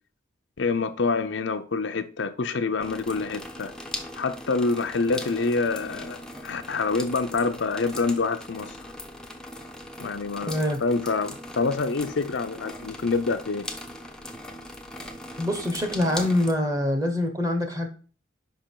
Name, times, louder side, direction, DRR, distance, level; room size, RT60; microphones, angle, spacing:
voice 1, 0.6-3.7 4.2-8.7 10.0-13.7, left 4 dB, 70° left, 0.6 m, -26 dB
sound 1, 2.8-16.5, left 1 dB, 5° left, 0.6 m, -40 dB
voice 2, 10.4-10.8 15.4-17.9, left 1 dB, 20° right, 1.0 m, -25 dB
5.5 x 5.1 x 4.5 m
head